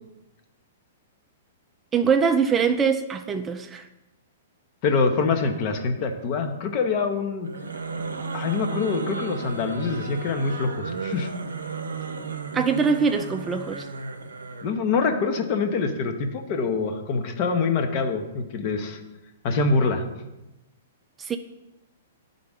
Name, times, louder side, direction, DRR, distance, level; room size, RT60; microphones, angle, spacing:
voice 1, 1.9-3.8 12.5-13.9 21.2-21.4, right 6 dB, 20° right, 7 dB, 0.4 m, -23 dB
voice 2, 4.8-7.5 8.3-11.3 14.6-19.0 19.4-20.0, left 4 dB, 45° left, 5 dB, 0.9 m, -25 dB
sound 1, 7.4-14.8, right 4 dB, 85° right, 0.6 m, -34 dB
10.5 x 3.8 x 3.6 m, 0.98 s
hypercardioid pair, 120°, 0 cm